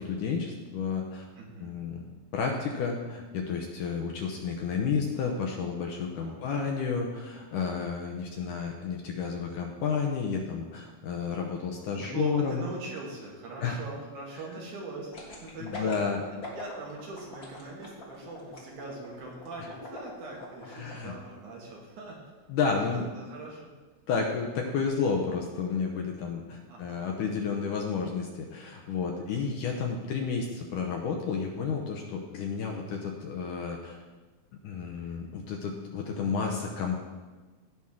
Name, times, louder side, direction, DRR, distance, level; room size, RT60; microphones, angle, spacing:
voice 1, 0.0-1.3 1.6-2.0 2.3-12.6 13.6-13.8 15.6-16.2 20.7-21.1 22.5-23.1 24.1-34.0 34.6-37.0, left 5 dB, 75° left, 1 dB, 2.1 m, -31 dB
voice 2, 1.4-1.8 6.2-6.5 12.0-16.0 16.5-22.2 22.7-22.8 23.2-23.7 26.7-27.0 29.2-29.5, right 2 dB, 60° right, -2 dB, 2.8 m, -41 dB
sound 1, 15.1-20.9 21.3-21.4, left 2 dB, 35° left, 1.6 m, -42 dB
16.5 x 6.1 x 3.7 m, 1.3 s
omnidirectional pair, 4.3 m